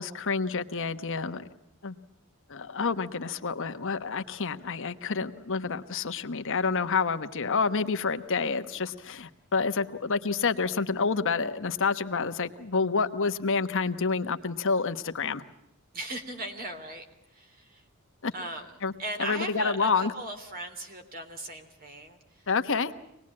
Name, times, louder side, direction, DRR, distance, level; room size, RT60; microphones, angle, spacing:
voice 1, 0.0-1.4 1.8-2.0 2.5-15.4 18.2-18.3 18.8-18.9 19.2-20.1 22.5-22.9, left 4 dB, 60° left, 9 dB, 1.1 m, -28 dB
voice 2, 15.9-17.0 17.3-17.8 18.3-18.6 19.0-22.5, right 1 dB, 40° right, 6 dB, 3.3 m, -38 dB
25.0 x 19.5 x 8.7 m, 0.83 s
head